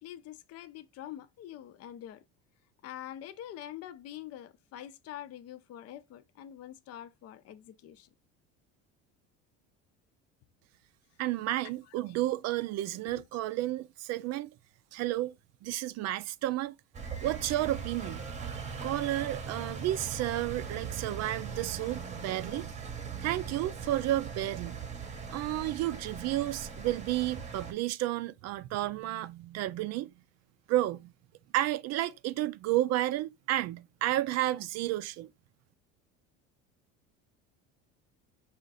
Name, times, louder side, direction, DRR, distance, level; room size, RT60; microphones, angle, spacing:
voice 1, 0.0-2.2 2.8-8.1 11.9-12.1 13.1-13.2, left 11 dB, 50° left, 0.6 m, -45 dB
voice 2, 11.2-14.5 14.9-15.3 15.6-16.7 17.2-18.3 18.8-22.7 23.2-24.8 25.3-30.1 30.7-31.1 31.5-35.3, right 15 dB, 55° right, 0.4 m, -31 dB
Engine, 16.9-27.7, right 5 dB, 20° right, 0.9 m, -40 dB
5.0 x 2.5 x 3.9 m
supercardioid pair, 110°, 31 cm